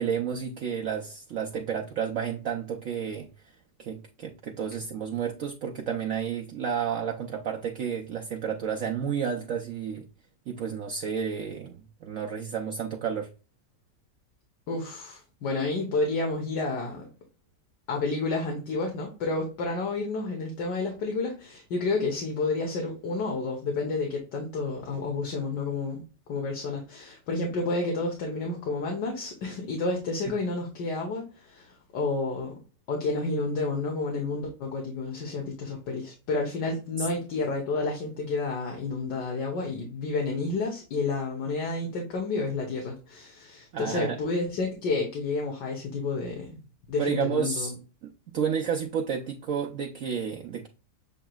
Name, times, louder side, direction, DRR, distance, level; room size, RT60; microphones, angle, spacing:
voice 1, 0.0-3.3 3.8-10.0 10.5-13.3 37.0-37.1 43.7-44.2 47.0-47.7 48.0-50.7, right 7 dB, 60° right, 0.9 m, -31 dB
voice 2, 14.7-17.1 17.9-26.0 26.3-32.6 32.9-46.6 46.9-47.8, left 3 dB, 75° left, 1.7 m, -30 dB
8.0 x 2.9 x 2.2 m
omnidirectional pair, 1.9 m